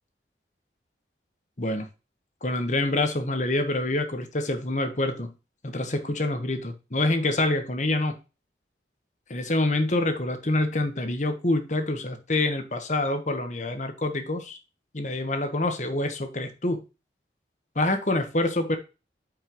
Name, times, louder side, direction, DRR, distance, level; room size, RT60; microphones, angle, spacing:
voice 1, 2.4-5.3 5.6-8.2 9.3-14.6 14.9-16.8 17.7-18.8, left 2 dB, 45° left, 1.3 m, -26 dB
9.1 x 5.4 x 3.1 m
head